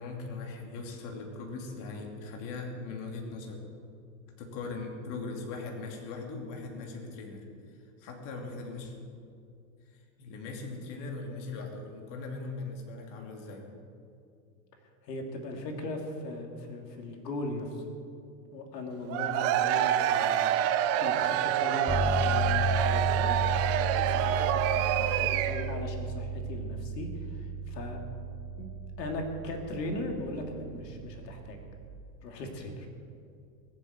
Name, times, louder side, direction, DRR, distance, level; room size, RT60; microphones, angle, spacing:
voice 1, 0.0-3.6 4.4-8.9 9.9-13.6, left 3 dB, 40° left, 1 dB, 2.8 m, -40 dB
voice 2, 15.0-17.8 18.5-20.5 21.0-28.0 28.6-28.7 29.0-31.6 32.2-32.9, left 2 dB, 85° left, 2 dB, 2.9 m, -38 dB
Cheering / Crowd, 19.1-25.8, right 11 dB, 30° right, 0.7 m, -27 dB
sound 1, 21.9-32.0, right 1 dB, 5° left, 1.9 m, -34 dB
20.5 x 7.6 x 8.8 m, 2.4 s
supercardioid pair, 140°, 48 cm